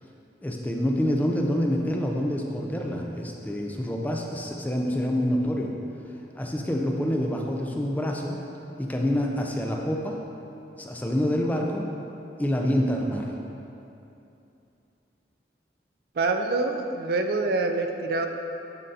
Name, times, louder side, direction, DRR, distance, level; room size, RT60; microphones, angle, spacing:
voice 1, 0.4-5.7 6.4-8.4 8.8-10.2 10.8-11.9 12.4-13.3, equal, 10° left, 0 dB, 0.4 m, -27 dB
voice 2, 16.2-18.3, right 3 dB, 55° right, 5 dB, 0.4 m, -26 dB
10.5 x 3.8 x 2.7 m, 2.8 s
head